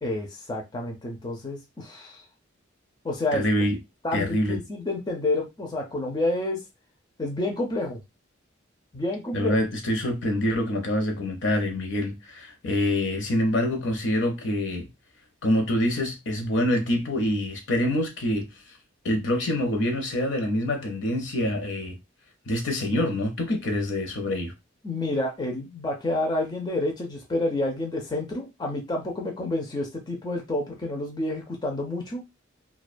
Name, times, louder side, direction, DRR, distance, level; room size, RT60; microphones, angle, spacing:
voice 1, 0.0-2.2 3.0-3.5 4.0-6.6 7.2-8.0 8.9-9.6 24.8-32.2, left 2 dB, 20° left, 0.4 m, -29 dB
voice 2, 3.3-3.7 4.1-4.6 9.3-14.9 15.4-18.5 19.0-22.0 22.5-24.5, left 1 dB, 60° left, 0.7 m, -26 dB
2.3 x 2.2 x 2.4 m
head